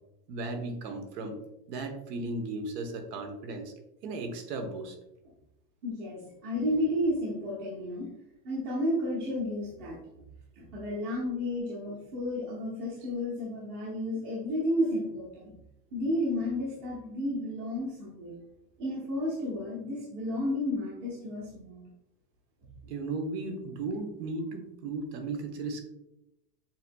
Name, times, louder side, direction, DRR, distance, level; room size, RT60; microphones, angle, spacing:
voice 1, 0.3-1.4 1.7-3.7 4.0-4.9 22.9-25.8, right 3 dB, 80° right, 6 dB, 1.1 m, -35 dB
voice 2, 5.8-8.1 8.4-10.2 10.6-15.5 15.9-18.4 18.8-21.8, left 1 dB, 40° right, -6 dB, 1.1 m, -32 dB
7.3 x 2.8 x 2.2 m, 0.88 s
supercardioid pair, 165°, 49 cm